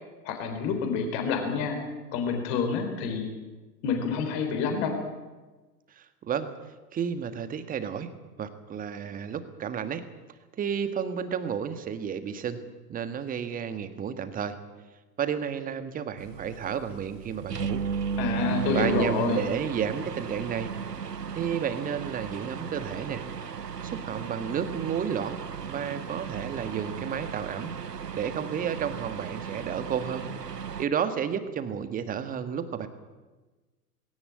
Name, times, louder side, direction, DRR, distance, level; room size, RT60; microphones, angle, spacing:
voice 1, 0.2-1.8 2.1-3.3 3.8-4.9 18.2-19.4, left 6 dB, 40° left, 5 dB, 4.0 m, -28 dB
voice 2, 6.0-6.5 6.9-8.1 8.4-10.0 10.6-12.6 12.9-14.6 15.2-17.8 18.7-20.7 21.3-23.2 23.8-25.4 25.7-27.7 28.2-30.3 30.8-32.9, right 7 dB, 15° right, 10 dB, 1.6 m, -31 dB
sound 1, 16.2-30.9, right 6 dB, 80° right, 1.1 m, -35 dB
19.5 x 17.5 x 8.7 m, 1.2 s
figure-of-eight pair, 105°, 47 cm